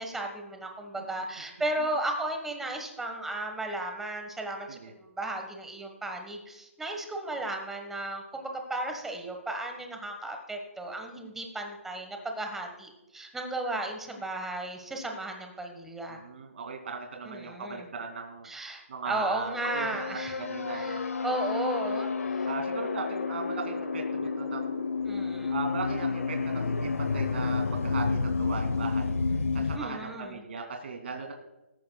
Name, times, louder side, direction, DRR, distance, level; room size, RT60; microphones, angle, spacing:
voice 1, 0.0-16.2 17.3-17.8 18.5-20.4 20.7-22.5 25.1-25.5 29.7-30.4, right 1 dB, 5° right, 3 dB, 1.4 m, -35 dB
voice 2, 16.1-21.0 22.5-24.9 25.5-31.3, right 4 dB, 50° right, 3 dB, 2.5 m, -38 dB
sound 1, 19.5-29.8, left 4 dB, 75° left, 1.0 m, -30 dB
17.5 x 14.5 x 2.4 m, 0.98 s
figure-of-eight pair, 150°, 8 cm